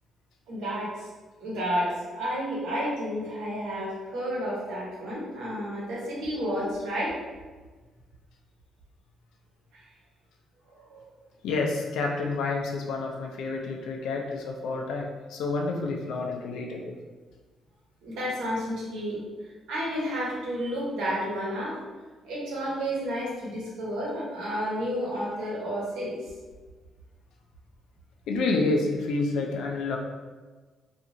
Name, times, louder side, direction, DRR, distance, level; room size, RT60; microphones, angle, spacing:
voice 1, 0.5-1.1 1.4-7.2 9.7-9.8 10.7-11.0 18.0-19.2 19.7-21.8 22.2-26.2, equal, 90° right, -6 dB, 1.0 m, -31 dB
voice 2, 11.4-17.0 28.3-30.0, left 3 dB, 80° left, 1 dB, 0.4 m, -29 dB
2.8 x 2.4 x 2.5 m, 1.4 s
cardioid pair, 100°, 0 cm